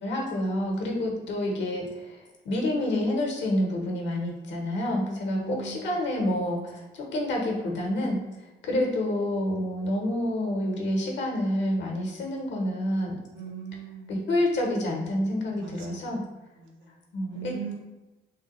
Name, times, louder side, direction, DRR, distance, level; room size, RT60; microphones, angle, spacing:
voice 1, 0.0-2.2 2.4-8.2 8.6-13.2 14.1-16.2 17.1-17.7, left 1 dB, 65° left, 0 dB, 0.9 m, -28 dB
voice 2, 5.2-5.9 13.3-14.1 15.5-16.1 16.6-17.7, right 7 dB, 85° right, -1 dB, 0.6 m, -41 dB
3.2 x 2.2 x 3.0 m, 1.1 s
cardioid pair, 90°, 20 cm